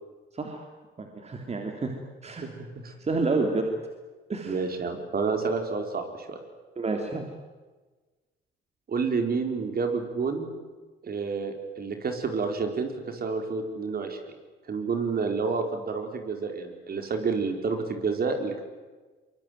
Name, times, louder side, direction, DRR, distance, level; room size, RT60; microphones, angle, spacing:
voice 1, 0.3-0.7 1.0-1.9 2.2-2.4 3.0-3.7 4.3-4.6 6.8-7.3, right 3 dB, 35° right, 3 dB, 3.3 m, -29 dB
voice 2, 2.4-2.9 4.4-6.4 8.9-10.5 11.0-14.2 14.7-18.6, right 4 dB, 50° right, 5 dB, 4.5 m, -29 dB
23.5 x 22.5 x 9.4 m, 1.3 s
cardioid pair, 90°, 20 cm